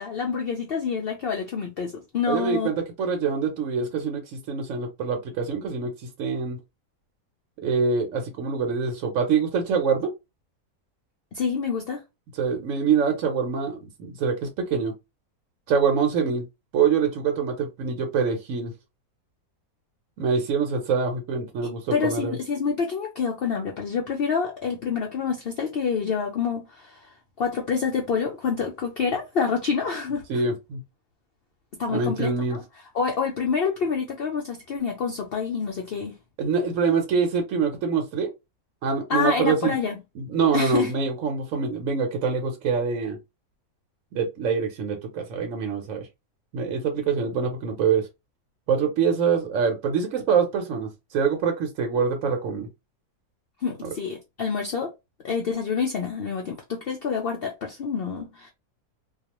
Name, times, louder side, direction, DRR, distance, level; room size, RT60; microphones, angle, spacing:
voice 1, 0.0-2.7 11.3-12.0 21.9-30.4 31.8-32.6 32.9-36.2 39.1-40.0 40.5-40.9 53.6-54.9 55.2-58.5, left 6 dB, 75° left, 0.5 m, -27 dB
voice 2, 2.3-5.9 6.2-6.6 7.6-10.1 12.3-14.9 15.7-16.4 16.7-18.7 20.2-22.4 30.3-30.8 31.9-32.6 36.4-38.3 38.8-39.8 40.2-43.2 44.1-46.1 46.5-48.1 48.7-52.7 53.8-53.9, right 5 dB, 65° right, 1.0 m, -25 dB
2.3 x 2.3 x 2.9 m
omnidirectional pair, 1.6 m